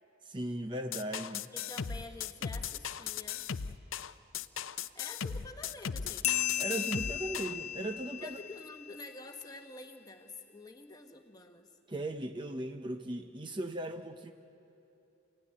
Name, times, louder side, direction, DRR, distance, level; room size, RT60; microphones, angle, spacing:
voice 1, 0.2-1.5 6.6-8.4 11.9-14.3, right 1 dB, 25° right, 7 dB, 0.6 m, -38 dB
sound 1, 0.9-7.6, left 7 dB, 80° left, 0.6 m, -37 dB
voice 2, 1.5-3.5 4.9-6.4 8.2-11.7, left 2 dB, 20° left, 6 dB, 1.2 m, -48 dB
sound 2, 6.2-9.3, left 12 dB, 35° left, 0.7 m, -35 dB
27.0 x 16.5 x 9.9 m, 2.9 s
head